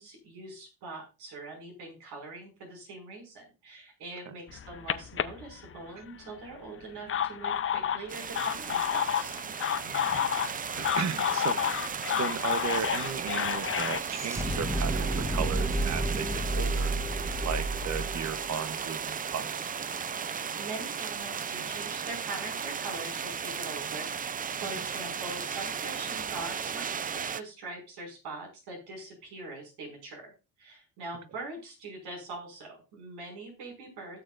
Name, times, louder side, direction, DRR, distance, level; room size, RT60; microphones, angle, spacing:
voice 1, 0.0-9.4 20.1-30.3 30.6-34.2, right 2 dB, 75° right, 1 dB, 5.9 m, -43 dB
sound 1, 4.5-6.1 6.8-14.0, left 9 dB, 35° left, 0.7 m, -30 dB
sound 2, 8.1-27.4, right 7 dB, 25° right, 0.4 m, -36 dB
voice 2, 9.8-10.2 10.5-11.9 12.2-16.9 17.4-19.7 24.7-24.8, right 7 dB, 45° right, 12 dB, 1.0 m, -36 dB
sound 3, 10.9-11.0 11.3-19.5, right 1 dB, 5° right, 1.2 m, -32 dB
16.5 x 6.9 x 2.5 m, 0.29 s
cardioid pair, 100°, 40 cm